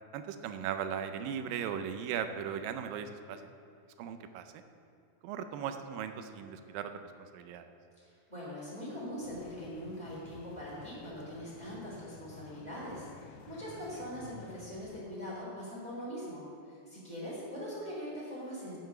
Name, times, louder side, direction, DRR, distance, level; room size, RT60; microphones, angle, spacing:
voice 1, 0.1-3.5 4.0-4.4 5.2-6.9 7.3-7.7, right 8 dB, 80° right, 8 dB, 2.3 m, -37 dB
voice 2, 8.0-18.8, equal, 10° right, -7 dB, 2.7 m, -42 dB
sound 1, 9.2-15.1, left 7 dB, 85° left, 2.3 m, -52 dB
9.2 x 9.1 x 5.9 m, 2.6 s
omnidirectional pair, 4.2 m